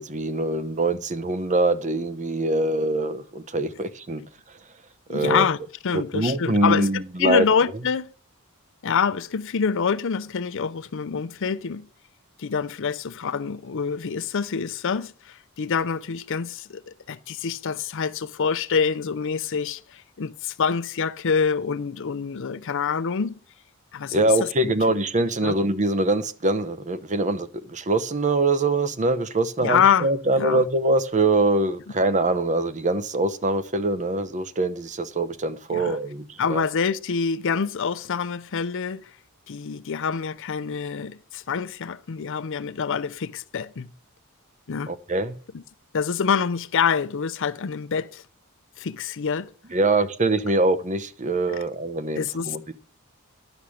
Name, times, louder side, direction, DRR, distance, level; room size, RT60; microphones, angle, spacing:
voice 1, 0.0-4.2 5.1-5.5 5.9-7.4 24.1-36.6 44.9-45.3 49.7-52.7, right 2 dB, 35° right, 0.8 m, -23 dB
voice 2, 5.1-5.6 5.8-6.9 7.2-8.1 8.8-11.9 12.4-23.4 23.9-25.0 25.4-25.5 29.6-30.1 30.4-30.6 35.7-36.0 36.4-39.1 39.5-43.9 44.7-44.9 45.5-45.6 45.9-48.2 48.8-49.5 52.2-52.7, left 6 dB, 60° left, 0.5 m, -26 dB
10.5 x 7.0 x 6.4 m
head